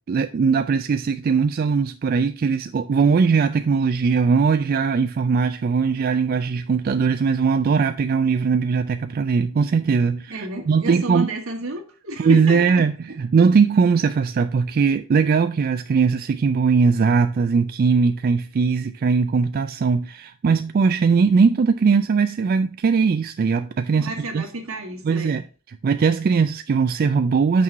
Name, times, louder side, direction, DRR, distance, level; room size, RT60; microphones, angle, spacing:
voice 1, 0.1-11.3 12.2-24.4 25.0-27.6, right 5 dB, 45° right, 0.3 m, -20 dB
voice 2, 10.3-12.8 23.9-25.3, right 1 dB, 80° right, 1.7 m, -30 dB
6.0 x 4.6 x 5.4 m
head